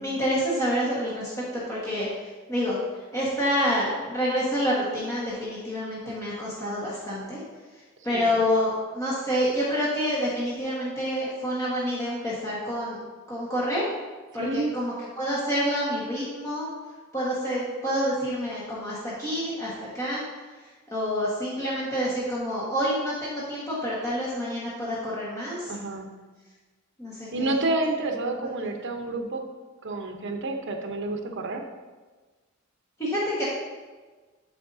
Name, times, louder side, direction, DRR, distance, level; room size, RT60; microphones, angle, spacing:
voice 1, 0.0-2.8 3.1-7.4 7.7-13.0 13.3-13.9 14.3-16.7 17.1-20.2 20.6-25.7 27.0-27.6 28.4-28.5 33.0-33.4, equal, 15° left, -8 dB, 1.4 m, -28 dB
voice 2, 14.4-14.7 25.7-26.1 27.3-29.4 29.8-31.6, right 2 dB, 60° right, 4 dB, 0.8 m, -29 dB
11.5 x 4.8 x 2.7 m, 1.3 s
head